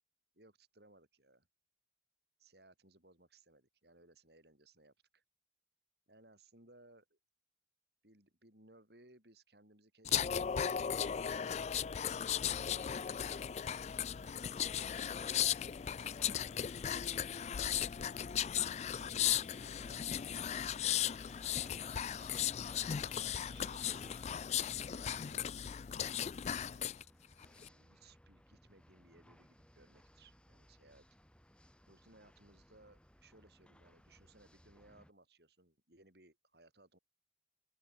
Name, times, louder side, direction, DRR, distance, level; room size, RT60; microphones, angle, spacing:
voice 1, 0.3-1.5 2.4-5.2 6.1-7.2 8.0-13.0 13.4-13.7 14.2-15.4 18.4-20.9 21.4-22.3 23.4-25.5 26.5-26.9 27.5-31.0 31.9-37.0, right 2 dB, 60° right, 7.1 m, -64 dB
sound 1, 10.0-27.0 27.4-27.7, left 9 dB, 35° left, 0.3 m, -36 dB
sound 2, 15.2-35.1, equal, 5° left, 5.4 m, -63 dB
open air
head